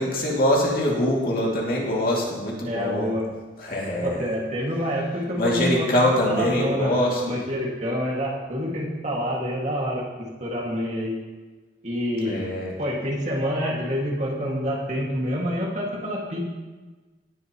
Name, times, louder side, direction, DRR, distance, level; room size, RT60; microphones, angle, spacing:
voice 1, 0.0-3.1 3.6-4.2 5.4-7.4 12.2-12.7, left 1 dB, 55° left, -3 dB, 2.5 m, -23 dB
voice 2, 2.6-3.3 4.0-5.9 6.2-11.1 11.8-12.5 12.8-16.4, equal, 40° right, -3 dB, 2.1 m, -27 dB
18.0 x 7.8 x 3.0 m, 1.3 s
head